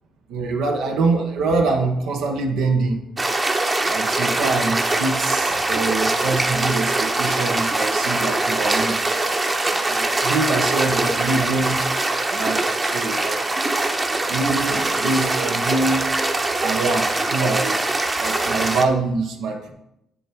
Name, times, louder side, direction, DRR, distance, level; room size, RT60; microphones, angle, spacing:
voice 1, 0.3-3.0 3.8-9.0 9.7-11.8 12.3-13.4 14.3-16.1 16.6-17.8 18.2-19.7, right 3 dB, 85° right, 2 dB, 1.2 m, -24 dB
sound 1, 3.2-18.8, right 2 dB, 25° right, 0.9 m, -22 dB
7.2 x 7.0 x 4.5 m, 0.80 s
cardioid pair, 90°, 0 cm